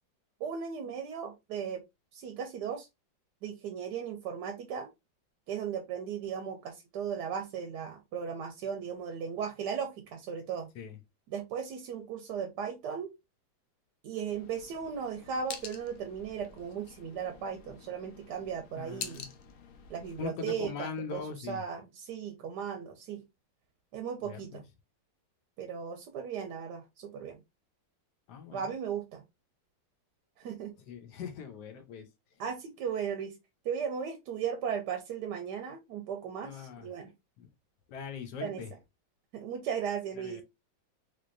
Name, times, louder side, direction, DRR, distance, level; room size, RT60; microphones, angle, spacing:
voice 1, 0.4-1.8 2.1-2.9 3.4-4.9 5.5-10.7 11.3-13.1 14.0-19.3 19.9-23.2 23.9-24.6 25.6-27.4 28.5-29.2 30.4-30.7 32.4-33.4 33.6-37.1 38.4-38.6 39.3-40.4, right 7 dB, 70° right, 1.1 m, -36 dB
sound 1, 14.2-20.3, left 7 dB, 85° left, 0.7 m, -47 dB
voice 2, 18.8-19.3 20.2-21.6 24.2-24.6 28.3-28.7 30.9-32.1 36.4-36.9 37.4-37.5 37.9-38.7 40.2-40.4, left 6 dB, 65° left, 1.1 m, -41 dB
3.5 x 3.3 x 2.5 m
omnidirectional pair, 2.1 m